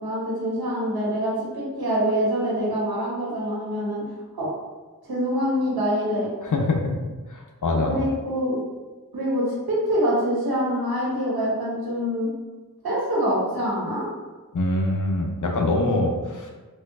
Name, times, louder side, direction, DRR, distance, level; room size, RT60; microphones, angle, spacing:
voice 1, 0.0-4.0 4.3-4.5 5.1-6.3 7.7-8.6 9.1-12.3 12.8-14.1, equal, 80° right, -5 dB, 1.2 m, -25 dB
voice 2, 6.4-7.0 7.3-8.0 14.5-16.5, left 2 dB, 55° left, 1 dB, 0.6 m, -24 dB
4.4 x 2.3 x 2.4 m, 1.3 s
wide cardioid pair, 50°, 36 cm